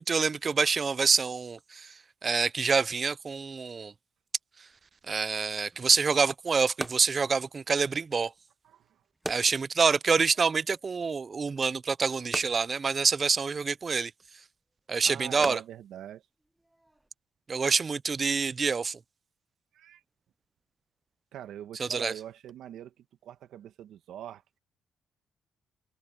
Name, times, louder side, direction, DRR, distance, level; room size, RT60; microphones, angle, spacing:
voice 1, 0.0-3.9 5.1-8.3 9.3-14.1 14.9-15.6 17.5-19.0 21.8-22.1, right 5 dB, 35° right, 0.5 m, -27 dB
sound 1, 5.7-17.1, right 1 dB, 10° right, 0.9 m, -44 dB
voice 2, 8.6-9.0 15.0-16.2 19.7-20.0 21.3-24.4, right 11 dB, 75° right, 1.8 m, -43 dB
cardioid pair, 90°, 0 cm